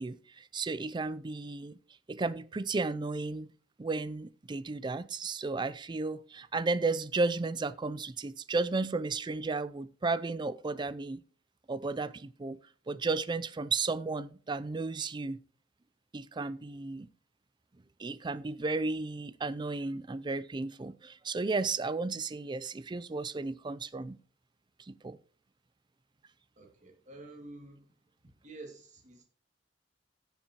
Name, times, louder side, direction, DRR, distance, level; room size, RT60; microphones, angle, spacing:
voice 1, 0.0-1.8 2.1-3.5 3.8-11.2 11.7-12.6 12.9-15.4 16.1-17.1 18.0-24.2 24.9-25.2, right 3 dB, 25° right, 0.4 m, -33 dB
voice 2, 26.6-27.9 28.4-29.2, right 2 dB, 40° right, 2.5 m, -49 dB
17.0 x 7.1 x 3.0 m
head